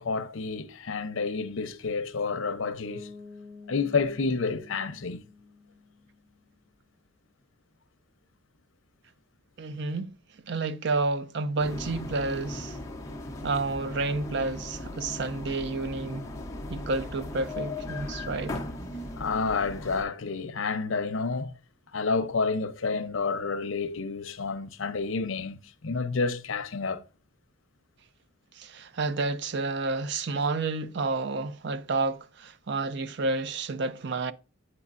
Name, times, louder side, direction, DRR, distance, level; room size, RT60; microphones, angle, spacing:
voice 1, 0.0-3.1 3.7-5.2 19.2-21.6 21.9-27.0, left 4 dB, 75° left, 0.7 m, -29 dB
Bass guitar, 2.9-6.6, left 4 dB, 90° right, 2.4 m, -48 dB
voice 2, 9.6-10.1 10.4-12.8 13.4-16.3 16.7-18.6 28.5-34.3, right 3 dB, 55° right, 0.5 m, -30 dB
sound 1, 11.6-20.0, left 1 dB, 15° left, 0.7 m, -38 dB
8.4 x 4.8 x 2.5 m
head